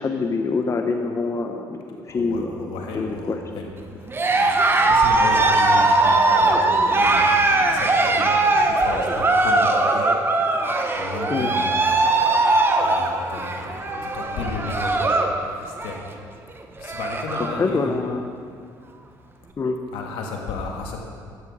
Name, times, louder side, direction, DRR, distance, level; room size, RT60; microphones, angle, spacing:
voice 1, 0.0-1.8 2.0-2.5 2.9-3.4 11.3-11.5 17.5-18.2 19.6-19.8, left 4 dB, 35° left, 4 dB, 0.9 m, -25 dB
voice 2, 2.1-3.7 4.0-10.1 10.9-12.0 12.8-15.3 15.6-16.0 16.8-18.0 19.9-21.0, left 3 dB, 80° left, 1 dB, 1.8 m, -33 dB
Cheering, 4.1-15.4 15.7-16.1 16.5-16.6 16.8-17.6, right 2 dB, 25° right, 1.1 m, -20 dB
12.0 x 9.2 x 4.9 m, 2.2 s
supercardioid pair, 80°, 9 cm